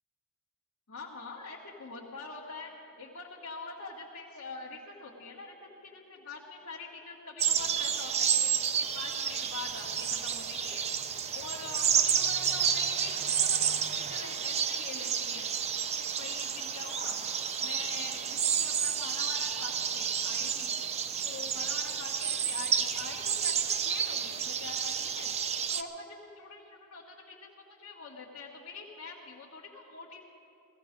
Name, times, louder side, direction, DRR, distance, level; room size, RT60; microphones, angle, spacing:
voice 1, 0.9-2.7 3.0-10.8 11.3-15.5 16.2-17.2 17.6-20.7 21.2-25.3 25.7-30.2, left 4 dB, 75° left, -4 dB, 1.5 m, -45 dB
sound 1, 7.4-25.8, right 7 dB, 30° right, 0.5 m, -30 dB
17.0 x 15.0 x 5.2 m, 2.7 s
head